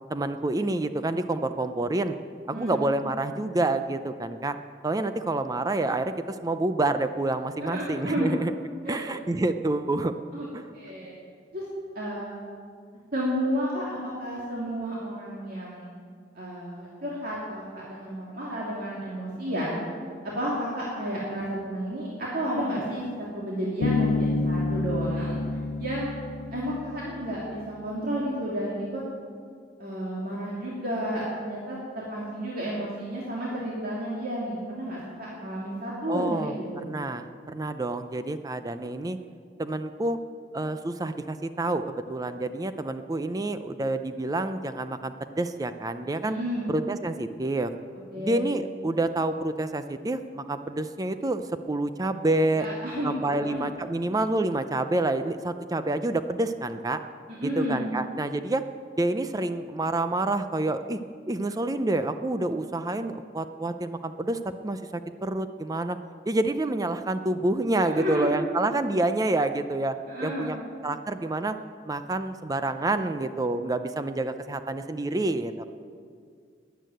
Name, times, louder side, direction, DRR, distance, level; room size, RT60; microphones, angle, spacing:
voice 1, 0.1-2.2 2.5-4.6 4.8-8.5 8.9-10.1 10.5-10.7 36.1-36.5 36.8-39.2 39.6-40.2 40.5-46.4 46.7-47.7 48.2-52.7 53.0-57.0 57.4-58.6 59.0-61.0 61.3-66.0 66.3-70.0 70.2-70.6 70.8-71.6 71.9-75.6, right 2 dB, 20° right, 10 dB, 0.5 m, -28 dB
voice 2, 7.6-8.3 8.8-9.0 10.3-10.5 10.7-11.1 11.5-11.6 11.9-12.4 13.1-15.9 16.3-19.8 20.2-25.4 25.8-26.1 26.5-29.0 29.8-36.8 46.3-46.7 48.1-48.4 52.6-53.6 57.4-57.8 68.0-68.4 70.1-70.6, equal, 55° right, -5 dB, 2.7 m, -31 dB
Bass guitar, 23.8-27.5, left 3 dB, 80° left, 0.6 m, -29 dB
13.0 x 10.0 x 9.1 m, 2.1 s
head